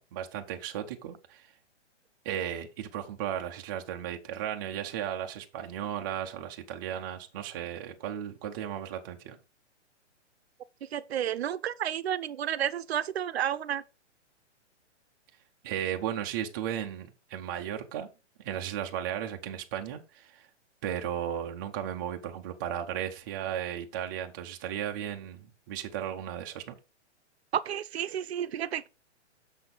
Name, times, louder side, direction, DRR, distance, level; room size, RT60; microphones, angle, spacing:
voice 1, 0.0-1.5 2.2-9.4 15.6-18.1 18.4-20.5 20.8-26.7, right 10 dB, 20° right, 0.5 m, -35 dB
voice 2, 10.8-13.8 27.5-28.9, right 10 dB, 60° right, 0.6 m, -31 dB
6.8 x 6.0 x 3.9 m
hypercardioid pair, 155°, 36 cm